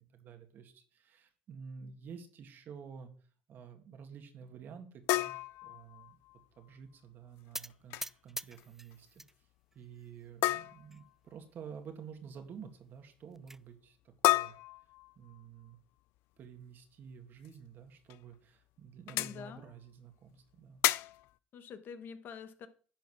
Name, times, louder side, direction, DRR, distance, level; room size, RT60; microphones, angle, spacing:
voice 1, 0.0-3.1 3.5-6.2 6.6-8.0 8.2-9.5 9.7-14.0 14.2-14.5 15.2-15.8 16.4-20.8, right 6 dB, 55° right, 6 dB, 2.0 m, -50 dB
sound 1, 5.1-6.4 7.7-8.1 8.4-8.6 8.9-9.0 10.4-11.1 14.2-15.4 17.4-17.5 18.1-18.2 19.1-19.4 20.8-21.3, left 18 dB, 75° left, 0.3 m, -31 dB
sound 2, 7.5-9.3 9.7-10.3 10.9-11.0 11.3-11.4 11.7-11.8 13.0-13.6, right 1 dB, 10° right, 0.3 m, -45 dB
voice 2, 19.1-19.7 21.5-22.7, left 7 dB, 55° left, 10 dB, 1.2 m, -46 dB
10.5 x 4.6 x 6.1 m, 0.41 s
supercardioid pair, 80°, 4 cm